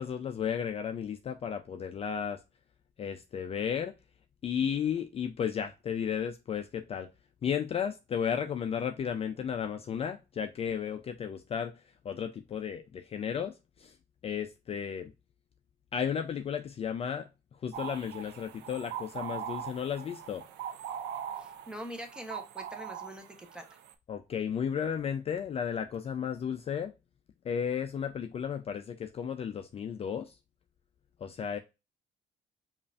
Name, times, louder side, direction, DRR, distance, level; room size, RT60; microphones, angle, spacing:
voice 1, 0.0-2.4 3.0-3.9 4.4-7.1 7.4-11.7 12.0-14.0 14.2-15.1 15.9-17.3 17.6-20.4 24.1-26.9 27.4-30.3 31.2-31.6, left 8 dB, 35° left, 0.4 m, -34 dB
sound 1, 17.7-23.9, right 9 dB, 90° right, 0.6 m, -41 dB
voice 2, 21.4-23.2 23.5-23.6, equal, 5° right, 0.9 m, -43 dB
5.3 x 2.5 x 2.4 m
cardioid pair, 110°, 17 cm